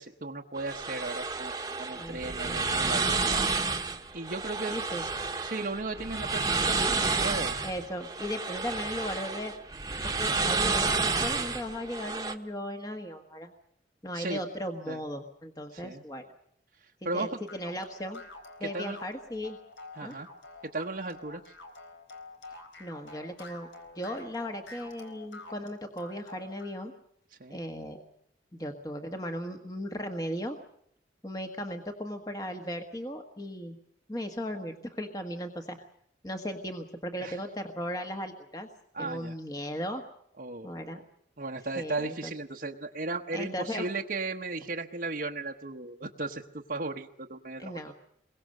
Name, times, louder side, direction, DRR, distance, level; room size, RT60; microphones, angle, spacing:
voice 1, 0.0-3.0 4.1-4.8 5.0-5.1 5.4-6.8 7.2-7.6 14.1-14.4 14.9-15.0 15.7-16.0 17.0-17.4 18.6-19.0 20.0-20.3 20.7-21.4 27.4-27.6 37.2-37.4 38.9-39.3 40.4-40.7 41.4-47.9, right 3 dB, 50° right, -1 dB, 1.1 m, -35 dB
sound 1, 0.6-12.3, right 4 dB, 20° right, 1.3 m, -30 dB
voice 2, 1.9-2.6 3.1-3.8 4.7-5.1 7.6-9.5 10.0-13.5 14.0-16.2 17.1-18.2 18.6-19.6 20.0-20.1 22.8-23.7 23.9-26.9 27.5-28.0 28.5-30.6 31.2-33.8 34.1-35.8 36.2-38.7 39.0-40.0 40.6-41.0 41.7-42.3 43.3-43.9 47.6-47.9, equal, 20° left, 5 dB, 1.5 m, -37 dB
sound 2, 17.5-26.8, left 2 dB, 85° left, 3.9 m, -48 dB
27.0 x 22.5 x 6.6 m, 0.70 s
head